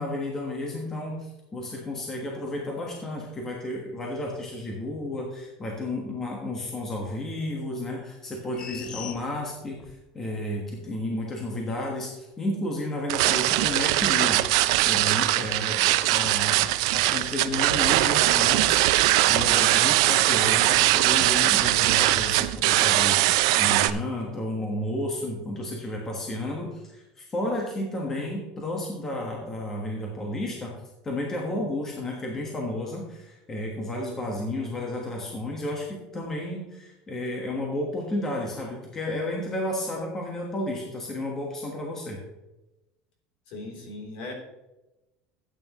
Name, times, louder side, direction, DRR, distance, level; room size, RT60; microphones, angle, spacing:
voice 1, 0.0-30.7 31.0-42.2, left 1 dB, 15° left, -1 dB, 1.4 m, -32 dB
sound 1, 8.5-10.0 10.4-10.5, left 8 dB, 35° left, 0.7 m, -40 dB
sound 2, 13.1-23.9, right 16 dB, 75° right, 0.5 m, -21 dB
voice 2, 43.5-44.3, left 2 dB, 55° left, 0 dB, 3.3 m, -38 dB
13.0 x 8.9 x 3.0 m, 0.99 s
cardioid pair, 175°, 3 cm